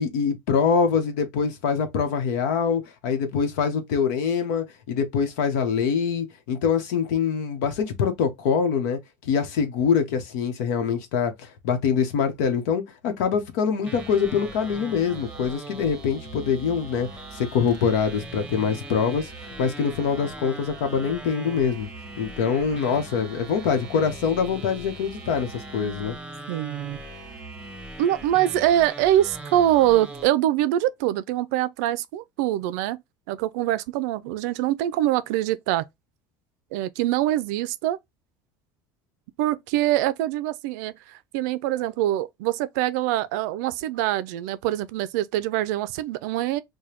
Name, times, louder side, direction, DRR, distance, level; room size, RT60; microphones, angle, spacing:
voice 1, 0.0-19.3 19.6-21.9 22.2-26.2, left 6 dB, 85° left, 0.9 m, -24 dB
sound 1, 13.9-30.3, right 2 dB, 10° right, 0.9 m, -40 dB
voice 2, 26.5-27.0 28.0-33.0 33.3-35.8 36.7-38.0 39.4-46.6, right 13 dB, 80° right, 0.4 m, -24 dB
4.8 x 2.2 x 2.8 m
supercardioid pair, 110°, 9 cm